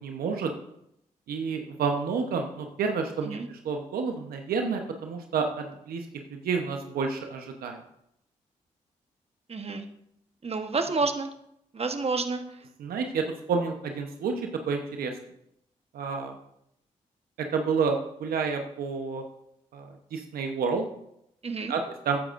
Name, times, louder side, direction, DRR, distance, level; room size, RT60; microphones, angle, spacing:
voice 1, 0.0-0.5 1.3-3.4 3.6-6.0 6.4-7.8 12.8-14.3 14.7-15.1 15.9-16.4 17.5-19.2 19.7-20.8 21.7-21.8 22.0-22.2, right 5 dB, 80° right, 4 dB, 1.0 m, -29 dB
voice 2, 9.5-9.9 10.4-11.3 11.7-12.4 21.4-21.7, right 4 dB, 40° right, 6 dB, 1.2 m, -29 dB
13.0 x 9.9 x 2.6 m, 0.78 s
supercardioid pair, 40°, 15 cm